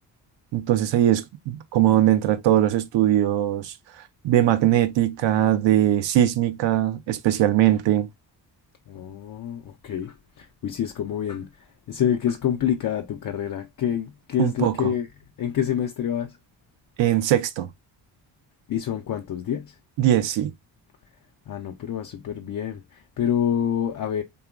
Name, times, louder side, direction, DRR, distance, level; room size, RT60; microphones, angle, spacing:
voice 1, 0.5-8.1 14.4-14.9 17.0-17.7 20.0-20.5, right 12 dB, 60° right, 0.6 m, -21 dB
voice 2, 8.9-15.1 15.4-16.4 18.7-19.7 21.5-24.2, left 9 dB, 40° left, 0.5 m, -27 dB
2.8 x 2.3 x 2.3 m
hypercardioid pair, 50°, 50 cm